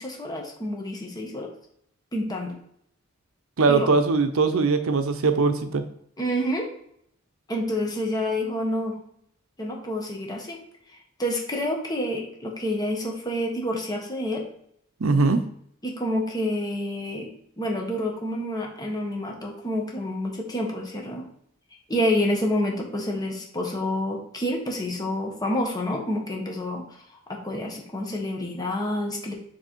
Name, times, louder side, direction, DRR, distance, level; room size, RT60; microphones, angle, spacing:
voice 1, 0.0-1.5 2.1-2.6 3.7-3.9 6.2-6.7 7.5-9.0 9.6-10.6 11.2-14.4 15.8-17.3 17.6-21.3 21.9-26.9 27.3-29.3, left 1 dB, 20° left, 0 dB, 1.3 m, -28 dB
voice 2, 3.6-5.8 15.0-15.4, right 4 dB, 75° right, 9 dB, 0.6 m, -21 dB
7.6 x 3.4 x 4.5 m, 0.70 s
head